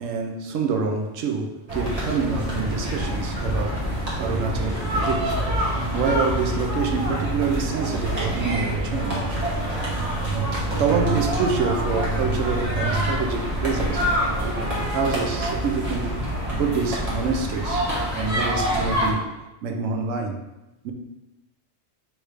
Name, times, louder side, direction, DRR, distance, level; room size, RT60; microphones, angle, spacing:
voice 1, 0.0-5.4 5.7-9.3 10.8-14.1 14.4-16.1 16.5-17.8 18.1-19.3 19.6-20.4 20.8-20.9, right 5 dB, 90° right, 3 dB, 1.0 m, -27 dB
sound 1, 1.7-19.1, right 1 dB, 30° right, 1.2 m, -26 dB
3.4 x 3.2 x 4.8 m, 0.99 s
omnidirectional pair, 1.3 m